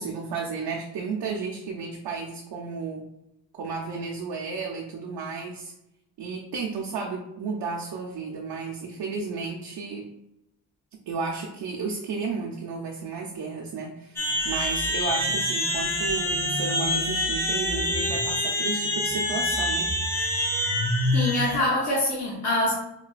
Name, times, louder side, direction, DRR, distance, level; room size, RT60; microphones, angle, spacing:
voice 1, 0.0-3.1 3.5-5.7 6.2-10.1 11.1-19.9, right 4 dB, 65° right, -1 dB, 0.6 m, -33 dB
sound 1, 14.2-21.6, left 1 dB, 5° left, 0.5 m, -26 dB
voice 2, 21.1-22.7, left 1 dB, 40° left, -7 dB, 0.8 m, -24 dB
4.0 x 2.2 x 2.4 m, 0.85 s
wide cardioid pair, 120°, 44 cm